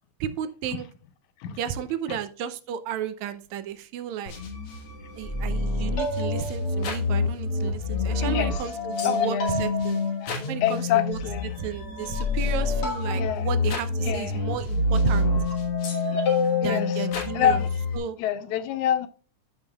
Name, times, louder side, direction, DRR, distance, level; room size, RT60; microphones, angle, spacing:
voice 1, 0.2-0.9 1.6-4.3 5.2-10.0 10.5-11.2 11.6-15.3 16.6-17.6 17.9-18.2, right 9 dB, 80° right, 1.9 m, -33 dB
sound 1, 4.3-18.0, left 3 dB, 55° left, 2.1 m, -27 dB
voice 2, 8.1-8.6 9.0-9.5 10.2-10.4 10.6-11.5 13.2-13.5 14.0-14.4 16.4-17.1 17.3-17.7 18.2-19.1, left 10 dB, 80° left, 2.2 m, -27 dB
13.5 x 5.6 x 2.3 m
omnidirectional pair, 3.4 m